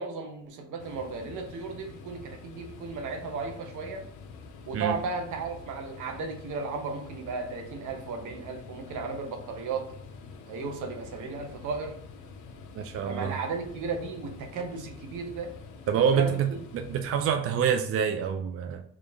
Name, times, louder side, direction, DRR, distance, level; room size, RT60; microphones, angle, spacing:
voice 1, 0.0-4.1 4.7-9.9 10.5-12.0 13.1-15.5 16.0-16.4, right 4 dB, 80° right, 4 dB, 0.8 m, -35 dB
sound 1, 0.8-17.4, left 4 dB, 80° left, 0.6 m, -47 dB
voice 2, 12.8-13.3 15.9-18.8, right 7 dB, 50° right, 6 dB, 0.4 m, -27 dB
3.6 x 2.4 x 3.3 m, 0.73 s
cardioid pair, 90°, 30 cm